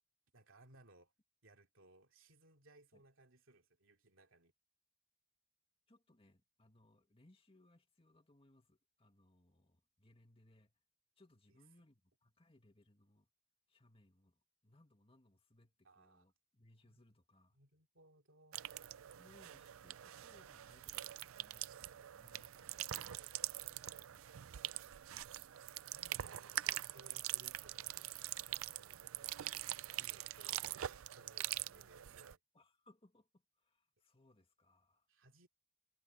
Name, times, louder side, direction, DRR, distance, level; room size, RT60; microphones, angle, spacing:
voice 1, 0.3-1.1 1.4-4.5 15.8-16.2 16.8-17.0 17.5-18.6 25.4-25.5 25.8-28.1 28.5-29.1 29.6-32.4 35.1-35.5, right 2 dB, 70° right, 3.0 m, -65 dB
voice 2, 5.9-10.7 11.2-13.3 13.7-17.6 19.2-23.2 23.6-25.0 29.0-29.3 31.7-32.3 32.5-35.1, left 1 dB, 30° left, 2.2 m, -69 dB
sound 1, 18.5-32.3, right 13 dB, 85° right, 0.5 m, -44 dB
head